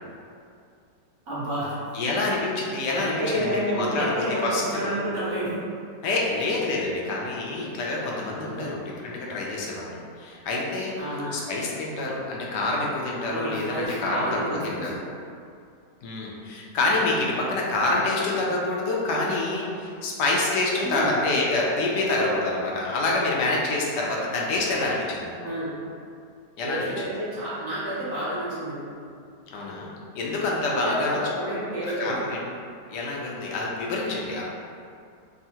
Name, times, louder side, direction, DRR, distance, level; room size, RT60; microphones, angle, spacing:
voice 1, 1.3-1.7 3.0-5.5 8.5-8.8 11.0-11.4 13.3-15.0 20.8-21.1 25.4-25.7 26.6-28.9 30.7-32.2, right 1 dB, 55° right, -10 dB, 0.9 m, -30 dB
voice 2, 1.9-5.0 6.0-10.9 11.3-14.3 14.6-14.9 16.0-25.5 26.6-26.9 29.5-31.2 31.8-32.4 32.9-34.4, left 2 dB, 80° left, -3 dB, 1.2 m, -27 dB
3.5 x 2.0 x 2.8 m, 2.4 s
omnidirectional pair, 1.8 m